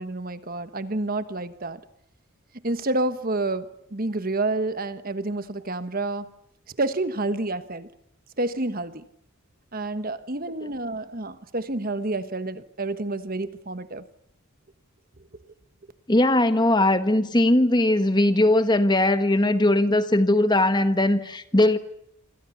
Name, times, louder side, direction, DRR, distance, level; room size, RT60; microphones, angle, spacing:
voice 1, 0.0-1.8 2.6-6.3 6.8-7.9 8.4-9.0 9.7-14.0, right 2 dB, 40° right, 1.3 m, -29 dB
voice 2, 16.1-21.8, left 1 dB, 20° left, 1.4 m, -20 dB
27.5 x 26.0 x 7.1 m
head